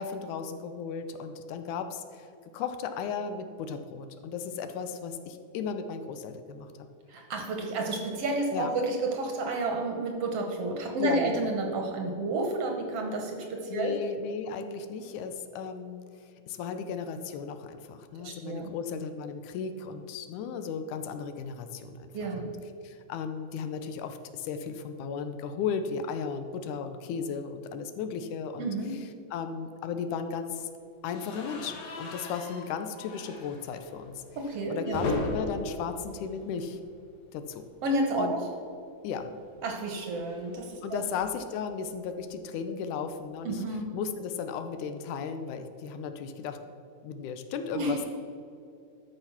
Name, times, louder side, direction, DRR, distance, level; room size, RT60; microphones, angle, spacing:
voice 1, 0.0-2.3 2.5-6.7 8.5-8.7 11.0-11.4 13.7-22.5 22.8-28.7 29.3-30.7 31.0-34.2 34.7-36.8 37.3-37.6 38.2-38.3 39.0-39.3 40.8-43.6 43.9-46.6 47.0-48.1, left 6 dB, 80° left, 8 dB, 2.2 m, -35 dB
voice 2, 7.1-13.9 18.2-18.7 22.1-22.5 28.6-28.9 34.4-35.1 37.8-38.4 39.6-41.1 43.4-43.9 47.7-48.0, right 2 dB, 60° right, 3 dB, 1.8 m, -30 dB
sound 1, 31.1-37.1 37.4-37.6 37.9-38.0 39.2-41.6, left 2 dB, 65° left, 2.6 m, -38 dB
13.0 x 5.8 x 5.7 m, 2.5 s
omnidirectional pair, 3.5 m